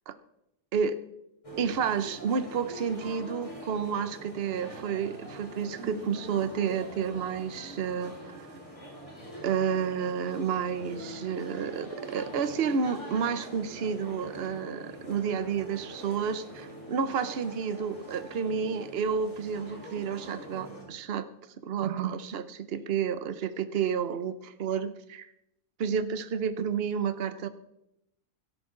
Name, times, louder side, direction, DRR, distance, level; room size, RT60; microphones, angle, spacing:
sound 1, 1.4-20.8, right 1 dB, 20° left, 3.7 m, -44 dB
voice 1, 1.6-8.3 9.4-21.3 21.6-25.3 25.8-27.5, right 7 dB, 45° right, 12 dB, 0.9 m, -30 dB
16.5 x 13.0 x 3.8 m, 0.84 s
omnidirectional pair, 1.7 m